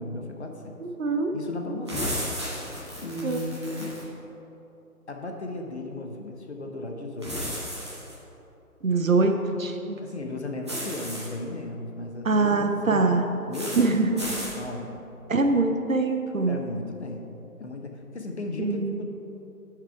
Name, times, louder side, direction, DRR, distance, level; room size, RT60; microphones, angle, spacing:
voice 1, 0.0-0.7 1.3-2.1 3.0-4.0 5.1-7.6 10.0-13.1 13.5-14.0 14.3-14.9 16.5-17.3 17.6-19.1, left 2 dB, 45° left, 2 dB, 0.8 m, -35 dB
voice 2, 0.8-1.3 3.2-3.4 8.8-10.0 12.2-13.2 13.8-14.2 15.3-16.6 18.6-19.0, right 3 dB, 60° right, 5 dB, 0.8 m, -23 dB
sound 1, 1.9-4.0 7.2-8.1 10.7-11.3 13.5-13.9 14.2-14.6, equal, 20° right, 1.0 m, -33 dB
9.0 x 5.0 x 4.5 m, 3.0 s
figure-of-eight pair, 155°, 45 cm